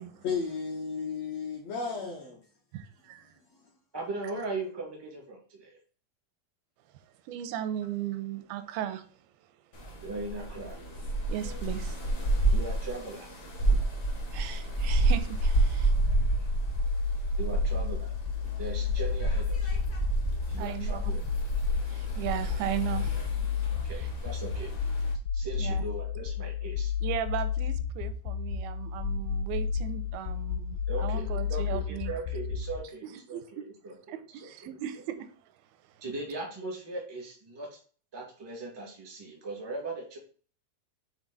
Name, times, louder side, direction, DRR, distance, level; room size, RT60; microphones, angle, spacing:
voice 1, 0.2-2.4, left 5 dB, 65° left, 1.7 m, -33 dB
voice 2, 3.9-5.8 10.0-10.8 12.5-13.3 17.4-18.1 18.6-19.8 20.5-21.2 23.9-24.7 25.3-26.9 30.9-33.9 34.4-34.5 36.0-37.8 38.1-40.2, right 2 dB, 20° right, 0.7 m, -38 dB
voice 3, 6.9-9.2 11.3-12.0 14.3-15.9 20.6-21.1 21.9-23.2 23.9-24.1 25.6-25.8 27.0-32.1 33.0-33.7 34.1-35.3 35.8-36.0, right 11 dB, 85° right, 2.5 m, -37 dB
sound 1, 9.7-25.1, right 2 dB, 50° left, 1.2 m, -30 dB
sound 2, 16.8-32.8, left 7 dB, 80° left, 2.3 m, -31 dB
7.3 x 4.0 x 3.9 m
omnidirectional pair, 4.3 m